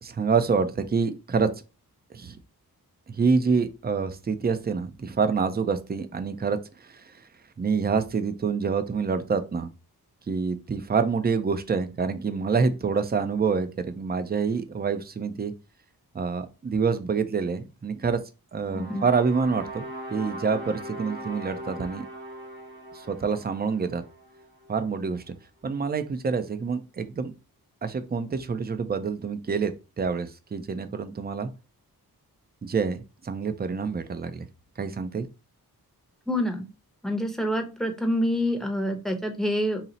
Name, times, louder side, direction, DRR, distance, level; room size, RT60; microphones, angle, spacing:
voice 1, 0.0-1.5 2.1-2.4 3.1-7.1 7.6-9.7 10.3-15.5 16.1-18.2 18.5-22.1 22.9-24.0 24.7-25.2 25.6-27.3 27.8-31.5 32.6-34.5 34.8-35.3, right 5 dB, 25° right, 10 dB, 0.4 m, -27 dB
sound 1, 18.6-24.8, right 1 dB, 75° right, 1.6 m, -40 dB
voice 2, 18.7-19.0 36.3-36.6 37.0-39.8, equal, ahead, 5 dB, 0.7 m, -27 dB
4.1 x 2.0 x 4.0 m, 0.30 s
wide cardioid pair, 90°, 38 cm